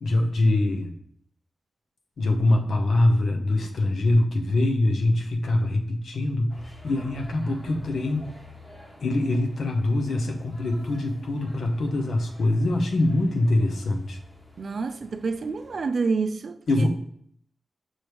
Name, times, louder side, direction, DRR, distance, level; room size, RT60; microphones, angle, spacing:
voice 1, 0.0-0.9 2.2-8.3 9.0-14.2 16.7-16.9, left 2 dB, 75° left, 1.0 m, -23 dB
sound 1, 6.5-15.8, left 2 dB, 20° left, 1.4 m, -49 dB
voice 2, 14.6-16.6, right 4 dB, 60° right, 0.5 m, -27 dB
6.2 x 3.1 x 5.1 m
wide cardioid pair, 85°, 0 cm